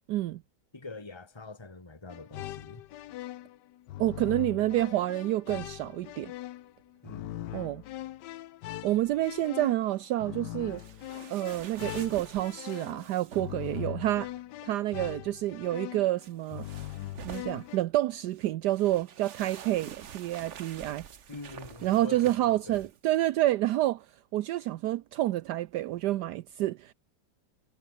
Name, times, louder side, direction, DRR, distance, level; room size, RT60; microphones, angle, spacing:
voice 1, 0.1-0.4 4.0-6.3 7.5-7.8 8.8-10.8 11.3-14.3 14.6-16.7 17.2-21.0 21.8-24.1 24.3-26.9, right 15 dB, 75° right, 1.2 m, -28 dB
voice 2, 0.7-2.8 7.0-7.6 21.3-22.9, left 3 dB, 15° left, 2.2 m, -44 dB
sound 1, 2.1-17.8, left 14 dB, 80° left, 1.3 m, -41 dB
Shifting in bed, 10.8-13.7 16.2-17.8 18.3-23.0, right 8 dB, 45° right, 1.2 m, -47 dB
omnidirectional pair, 1.9 m